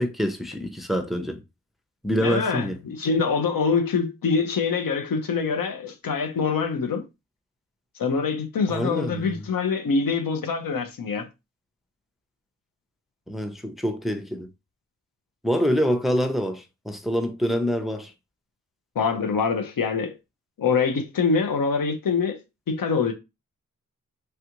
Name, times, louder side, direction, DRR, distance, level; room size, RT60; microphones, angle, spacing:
voice 1, 0.0-1.4 2.0-2.8 8.7-9.4 13.3-14.5 15.4-18.1, equal, ahead, 0.6 m, -26 dB
voice 2, 2.2-7.0 8.0-11.3 19.0-20.1 20.6-22.4 22.7-23.1, left 5 dB, 70° left, 0.7 m, -24 dB
3.3 x 2.4 x 2.9 m
cardioid pair, 55°, 35 cm